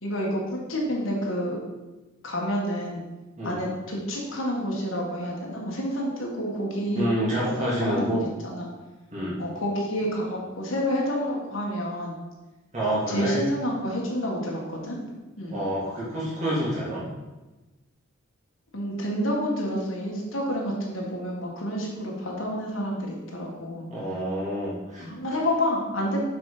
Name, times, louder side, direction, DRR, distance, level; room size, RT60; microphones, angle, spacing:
voice 1, 0.0-1.6 2.2-3.0 3.4-7.0 7.6-8.7 9.4-12.2 13.1-15.0 15.4-15.6 18.7-23.9 25.0-26.2, equal, 75° left, -2 dB, 1.9 m, -29 dB
voice 2, 6.9-8.2 9.1-9.4 12.7-13.4 15.5-17.0 23.9-25.1, right 1 dB, 35° right, -7 dB, 2.9 m, -28 dB
7.5 x 5.4 x 5.0 m, 1.1 s
head